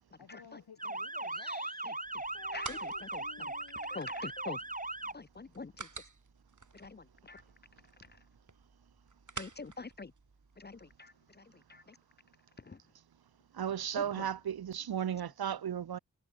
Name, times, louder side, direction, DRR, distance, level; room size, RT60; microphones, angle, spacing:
voice 1, 0.2-1.7 2.3-4.1, left 7 dB, 80° left, 4.7 m, -54 dB
Motor vehicle (road) / Siren, 0.8-5.1, right 2 dB, 20° right, 2.3 m, -39 dB
sound 1, 2.0-11.0, right 4 dB, 50° right, 7.6 m, -51 dB
voice 2, 3.9-4.6 5.1-5.7 6.8-7.0 7.3-7.4 9.4-10.1 10.6-10.8, left 4 dB, 25° left, 0.7 m, -43 dB
voice 3, 13.5-16.0, right 9 dB, 70° right, 1.0 m, -35 dB
cardioid pair, 40°, 38 cm